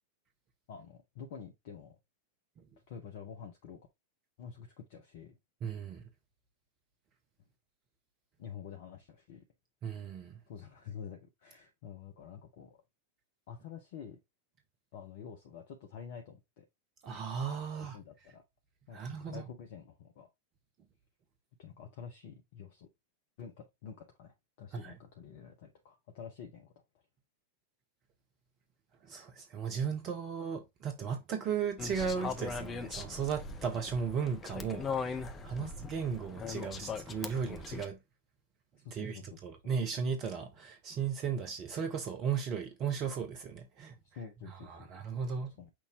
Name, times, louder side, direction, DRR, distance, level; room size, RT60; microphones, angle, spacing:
voice 1, 0.7-2.0 2.9-3.8 4.4-5.4 8.4-9.4 10.5-12.8 13.5-14.2 14.9-16.7 17.7-18.4 18.9-20.3 21.6-22.9 23.4-26.7 35.6-35.8 38.8-39.7 44.0-44.9 45.3-45.7, left 7 dB, 50° left, 0.9 m, -48 dB
voice 2, 5.6-6.0 9.8-10.4 17.0-18.0 18.9-19.4 24.7-25.0 29.0-38.0 38.9-44.0 44.5-45.5, right 6 dB, 35° right, 0.9 m, -36 dB
sound 1, 31.8-37.8, left 5 dB, 25° left, 0.7 m, -40 dB
6.1 x 2.7 x 3.1 m
figure-of-eight pair, 90°, 0 cm